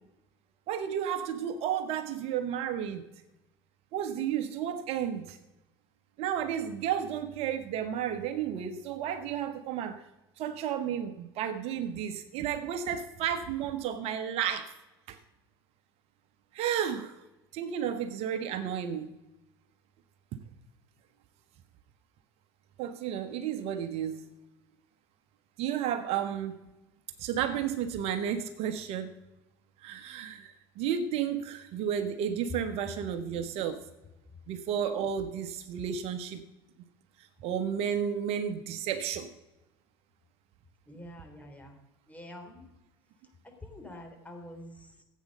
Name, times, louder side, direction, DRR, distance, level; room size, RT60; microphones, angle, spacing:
voice 1, 0.7-3.1 3.9-5.4 6.2-10.0 10.4-14.7 15.1-15.2 16.5-17.1 17.5-19.1 22.8-24.2 25.6-26.6 27.2-29.1 29.8-33.9 34.5-36.4 37.4-39.3, right 9 dB, 55° right, 10 dB, 1.2 m, -32 dB
voice 2, 40.9-41.7 42.1-42.6 43.6-44.7, left 1 dB, 10° left, 3 dB, 3.7 m, -46 dB
15.0 x 8.5 x 6.6 m, 1.0 s
hypercardioid pair, 80°, 12 cm